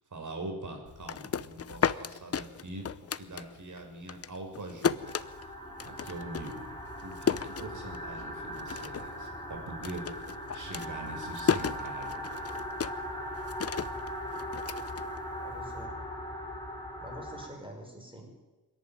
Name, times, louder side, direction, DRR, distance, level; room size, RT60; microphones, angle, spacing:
voice 1, 0.1-5.2 5.8-6.7 7.0-10.0 10.5-12.2, right 2 dB, 50° right, 3 dB, 6.1 m, -43 dB
sound 1, 0.9-3.8 4.1-8.2 8.5-9.2 9.4-15.7, left 7 dB, 35° left, 0.7 m, -33 dB
sound 2, 5.0-17.5, equal, 10° left, 5.1 m, -39 dB
voice 2, 15.4-15.9 17.0-18.4, right 1 dB, 15° right, 1 dB, 6.1 m, -46 dB
26.0 x 11.0 x 9.3 m, 1.2 s
cardioid pair, 90°, 40 cm